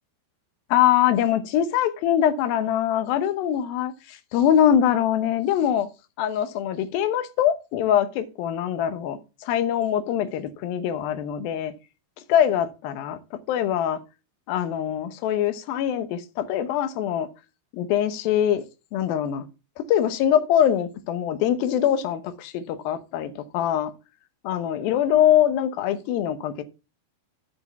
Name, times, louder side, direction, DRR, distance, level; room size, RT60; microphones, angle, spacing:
voice 1, 0.7-5.9 6.2-11.7 12.3-13.2 13.5-14.0 14.5-17.3 17.7-18.6 18.9-19.5 19.8-23.9 24.4-26.6, left 10 dB, 70° left, 2.5 m, -23 dB
8.2 x 5.0 x 7.0 m
omnidirectional pair, 4.7 m